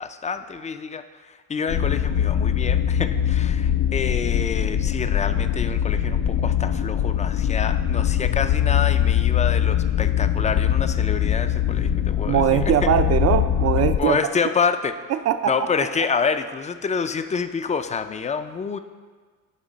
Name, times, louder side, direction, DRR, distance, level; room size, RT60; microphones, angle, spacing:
voice 1, 0.0-12.9 14.0-15.0 15.5-18.8, left 5 dB, 25° left, 10 dB, 0.3 m, -27 dB
sound 1, 1.7-14.0, left 10 dB, 80° left, 0.5 m, -22 dB
voice 2, 12.3-14.2 15.1-15.5, right 9 dB, 55° right, 11 dB, 0.5 m, -21 dB
8.3 x 3.5 x 5.1 m, 1.5 s
cardioid pair, 90°, 30 cm